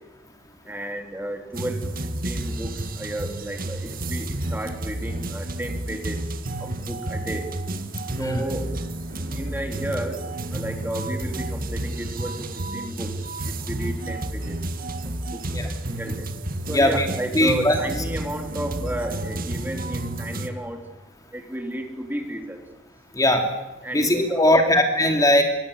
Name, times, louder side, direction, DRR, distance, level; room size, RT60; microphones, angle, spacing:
voice 1, 0.7-1.8 2.2-6.2 6.6-7.5 8.2-8.7 9.3-13.1 13.4-14.6 15.3-16.3 16.7-20.8 21.3-22.6 23.8-24.7, right 1 dB, 10° right, 4 dB, 3.3 m, -32 dB
sound 1, 1.5-20.5, right 1 dB, 50° right, 1.9 m, -31 dB
voice 2, 16.7-17.1 17.3-17.8 23.1-23.5 23.9-25.4, left 1 dB, 20° left, 4 dB, 2.9 m, -19 dB
28.0 x 24.0 x 8.4 m, 1.0 s
head